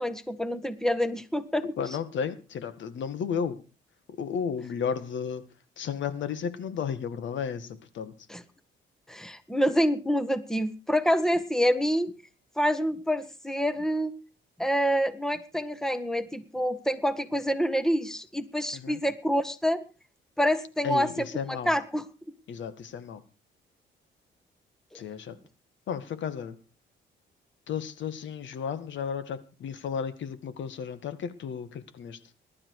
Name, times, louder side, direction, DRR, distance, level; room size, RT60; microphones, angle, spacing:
voice 1, 0.0-1.6 8.3-8.4 9.1-12.1 12.6-14.1 14.6-19.8 20.4-21.3 21.7-22.0, equal, 5° left, 12 dB, 1.6 m, -27 dB
voice 2, 1.8-3.6 4.2-5.5 5.8-8.1 18.7-19.0 20.8-21.7 22.5-23.2 24.9-25.4 25.9-26.6 27.7-32.2, left 7 dB, 70° left, 13 dB, 1.9 m, -33 dB
20.5 x 12.0 x 4.9 m, 0.35 s
cardioid pair, 90°, 20 cm